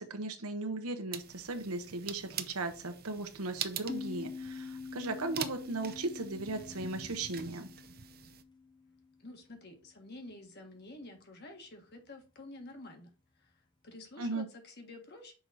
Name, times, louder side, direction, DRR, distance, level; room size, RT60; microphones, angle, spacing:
voice 1, 0.0-7.7 14.2-14.5, right 2 dB, 80° right, 1.1 m, -37 dB
sound 1, 1.1-8.4, right 9 dB, 45° right, 0.6 m, -44 dB
sound 2, 3.9-9.2, left 5 dB, 20° left, 0.6 m, -45 dB
voice 2, 9.2-13.1 13.3-15.3, left 2 dB, 45° left, 1.6 m, -50 dB
6.1 x 4.8 x 4.0 m
head